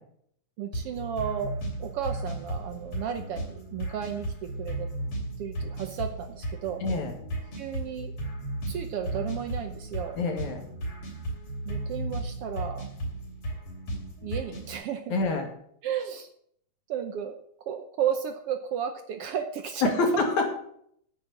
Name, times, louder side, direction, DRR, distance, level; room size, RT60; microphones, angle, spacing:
voice 1, 0.6-4.9 5.4-6.8 7.6-8.1 8.7-10.2 11.6-12.9 14.2-15.2 15.8-16.3 16.9-17.4 17.7-20.2, right 8 dB, 65° right, 7 dB, 1.6 m, -33 dB
sound 1, 0.7-14.7, right 1 dB, 50° left, 3.9 m, -35 dB
voice 2, 6.8-7.1 10.2-10.7 15.1-15.5 19.8-20.5, left 3 dB, 80° left, 3 dB, 3.6 m, -26 dB
9.1 x 8.7 x 7.1 m, 0.67 s
omnidirectional pair, 3.3 m